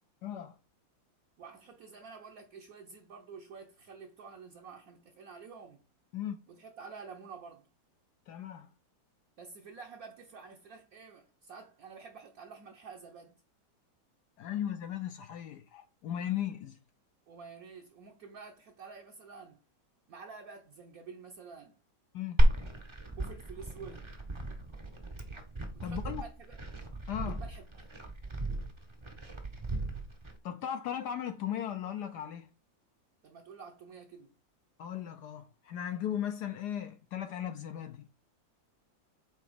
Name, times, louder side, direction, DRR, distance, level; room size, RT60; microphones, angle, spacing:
voice 1, 0.2-0.6 6.1-6.4 8.3-8.7 14.4-16.8 22.1-22.5 25.6-26.3 27.1-27.4 30.4-32.5 34.8-38.1, left 10 dB, 70° left, 1.0 m, -37 dB
voice 2, 1.4-5.8 6.5-7.7 9.4-13.4 17.3-19.6 20.1-21.8 23.2-24.1 25.7-26.6 27.3-27.8 33.2-34.3, right 5 dB, 55° right, 1.1 m, -49 dB
Glass, 22.4-30.3, right 1 dB, 25° right, 0.6 m, -32 dB
7.9 x 2.9 x 5.0 m
omnidirectional pair, 2.1 m